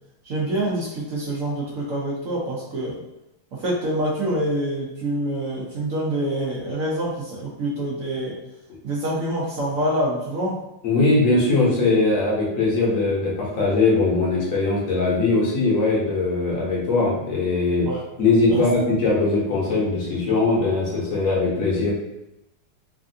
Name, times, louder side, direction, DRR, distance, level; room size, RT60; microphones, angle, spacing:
voice 1, 0.2-3.0 3.5-8.4 8.8-10.6 17.9-18.0 18.5-18.6, right 1 dB, 65° right, -5 dB, 0.8 m, -26 dB
voice 2, 10.8-17.9 18.2-21.9, left 3 dB, 55° left, -5 dB, 1.0 m, -20 dB
3.3 x 2.5 x 2.6 m, 0.88 s
omnidirectional pair, 2.1 m